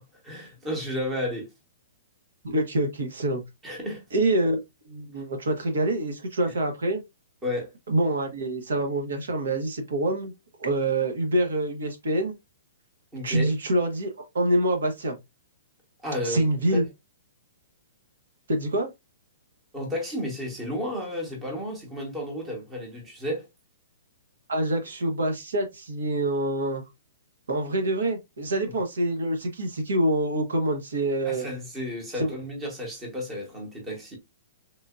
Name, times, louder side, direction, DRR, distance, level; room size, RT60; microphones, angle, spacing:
voice 1, 0.0-1.5 3.6-4.0 7.4-7.7 13.1-13.5 16.0-16.4 16.7-16.8 19.7-23.5 31.2-34.2, left 1 dB, 10° right, 0.9 m, -32 dB
voice 2, 2.4-3.4 4.1-7.0 7.9-10.3 10.6-12.3 13.2-15.2 16.2-16.8 18.5-18.9 24.5-26.8 27.5-31.5 32.2-32.3, right 1 dB, 90° right, 1.2 m, -26 dB
3.6 x 2.6 x 2.3 m
hypercardioid pair, 170°, 0 cm